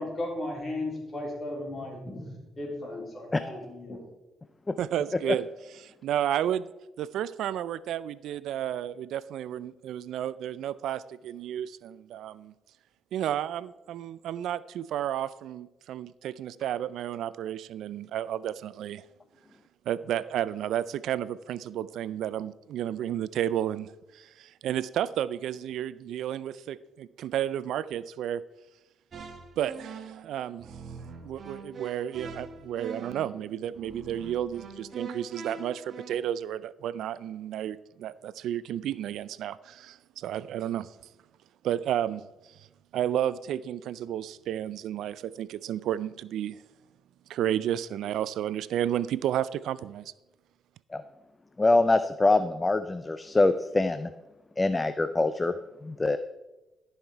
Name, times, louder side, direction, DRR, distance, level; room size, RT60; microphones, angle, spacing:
voice 1, 0.0-2.3 2.6-4.0, left 1 dB, 35° left, -1 dB, 3.9 m, -35 dB
voice 2, 4.8-6.7 7.0-12.5 13.1-19.1 19.9-28.4 29.6-30.7 31.2-41.0 41.6-42.7 42.9-46.6 47.3-50.1, right 11 dB, 80° right, 18 dB, 0.3 m, -32 dB
sound 1, 29.1-36.2, right 4 dB, 50° right, 1.2 m, -42 dB
voice 3, 51.6-54.1 54.6-55.5 55.8-56.2, left 2 dB, 20° left, 11 dB, 0.4 m, -24 dB
13.5 x 5.7 x 4.5 m, 1.0 s
cardioid pair, 90°, 0 cm